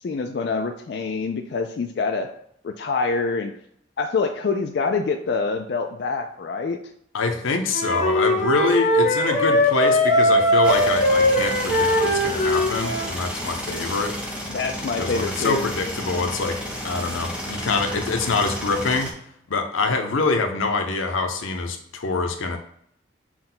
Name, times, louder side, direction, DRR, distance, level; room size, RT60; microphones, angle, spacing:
voice 1, 0.0-2.3 2.6-3.5 4.0-6.8 14.5-15.7, left 4 dB, 55° left, 4 dB, 0.3 m, -26 dB
voice 2, 7.1-14.2 15.0-19.1 19.5-22.6, left 3 dB, 90° left, 6 dB, 0.6 m, -25 dB
Wind instrument woodwind instrument, 7.7-13.1, equal, 35° left, 1.1 m, -20 dB
sound 1, 10.6-19.1, equal, 5° right, 0.6 m, -32 dB
6.0 x 2.2 x 3.8 m, 0.70 s
head